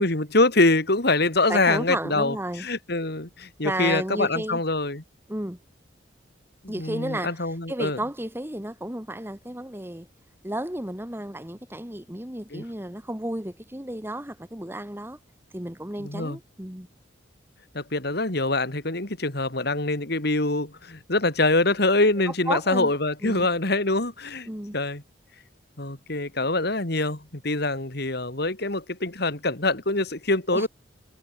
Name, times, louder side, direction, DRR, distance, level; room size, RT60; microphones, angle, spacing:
voice 1, 0.0-5.0 6.6-8.0 12.5-12.6 16.0-16.4 17.7-24.5 24.7-25.0 25.8-30.7, left 2 dB, 55° left, 3.0 m, -24 dB
voice 2, 1.5-2.7 3.6-4.6 5.3-5.6 6.7-10.1 10.4-15.2 15.5-16.9 22.3-22.9 23.2-23.5 24.5-24.8 30.5-30.7, right 1 dB, 10° right, 2.0 m, -32 dB
head